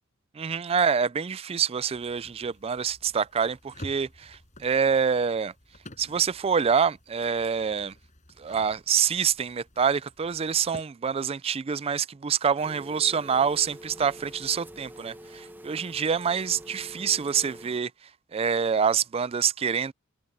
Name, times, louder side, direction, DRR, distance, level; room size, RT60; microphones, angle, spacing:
voice 1, 0.4-5.5 6.0-7.9 8.4-17.9 18.3-19.9, right 6 dB, 25° right, 0.3 m, -26 dB
sound 1, 1.9-10.8, left 1 dB, 35° left, 5.9 m, -50 dB
Telephone, 12.6-17.8, equal, 10° right, 0.9 m, -46 dB
head